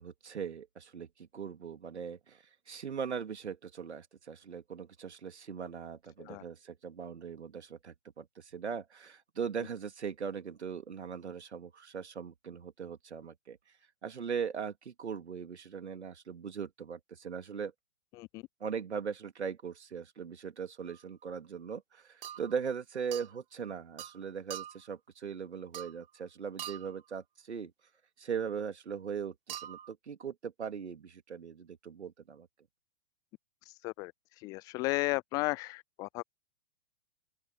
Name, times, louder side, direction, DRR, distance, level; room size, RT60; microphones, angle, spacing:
voice 1, 0.0-13.6 14.0-17.7 18.6-27.7 28.2-32.5, right 6 dB, 70° right, 2.9 m, -40 dB
sound 1, 20.9-21.0 22.2-22.6 23.1-23.4 24.0-24.2 24.5-24.9 25.7-26.1 26.6-27.0 29.5-29.9, right 11 dB, 50° right, 4.5 m, -43 dB
voice 2, 33.7-34.1 34.4-36.2, left 24 dB, 10° left, 0.4 m, -34 dB
open air
figure-of-eight pair, 110°, 35 cm